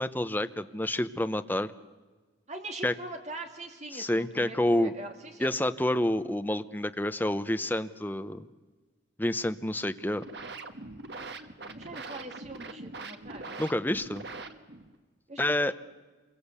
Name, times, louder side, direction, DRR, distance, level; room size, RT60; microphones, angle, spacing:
voice 1, 0.0-1.7 2.8-2.9 3.9-4.9 5.4-8.5 9.2-10.2 13.6-14.3 15.4-15.7, left 1 dB, 10° left, 10 dB, 0.7 m, -28 dB
voice 2, 2.5-5.5 11.7-13.6 15.3-15.4 15.7-15.8, right 2 dB, 35° right, 4 dB, 2.7 m, -42 dB
sound 1, 9.9-14.9, right 3 dB, 60° right, 1.4 m, -43 dB
27.5 x 22.5 x 8.3 m, 1.3 s
head